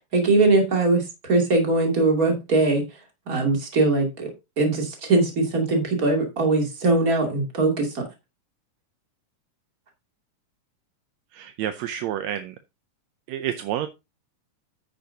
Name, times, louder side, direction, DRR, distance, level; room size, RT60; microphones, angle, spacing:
voice 1, 0.1-1.0 1.3-2.8 3.3-4.3 4.6-8.0, right 3 dB, 25° right, 2 dB, 2.7 m, -21 dB
voice 2, 11.3-12.5 13.3-13.9, right 11 dB, 80° right, 10 dB, 1.6 m, -29 dB
9.3 x 9.2 x 2.8 m, 0.24 s
omnidirectional pair, 3.8 m